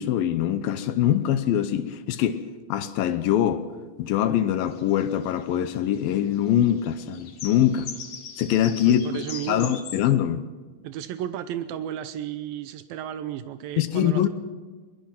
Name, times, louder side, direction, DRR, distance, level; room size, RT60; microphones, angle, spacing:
voice 1, 0.0-2.4 2.7-3.7 4.0-7.9 8.4-10.4 13.8-14.3, left 11 dB, 80° left, 2.6 m, -23 dB
sound 1, 4.7-10.0, left 7 dB, 55° left, 2.4 m, -41 dB
voice 2, 8.9-10.0 10.8-14.3, right 11 dB, 85° right, 2.6 m, -33 dB
22.5 x 20.5 x 5.9 m
omnidirectional pair, 4.1 m